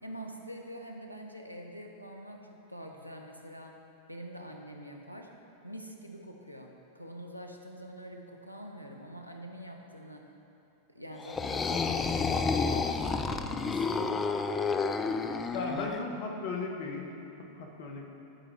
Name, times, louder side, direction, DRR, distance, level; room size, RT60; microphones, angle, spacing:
voice 1, 0.0-3.8 4.1-5.3 5.6-10.3 10.9-14.6, equal, 90° right, 2 dB, 0.6 m, -45 dB
sound 1, 11.2-16.0, left 4 dB, 20° left, 0.3 m, -30 dB
voice 2, 15.5-17.1 17.4-18.1, left 3 dB, 50° left, 1 dB, 1.0 m, -36 dB
11.5 x 5.0 x 3.1 m, 2.8 s
figure-of-eight pair, 90°, 0 cm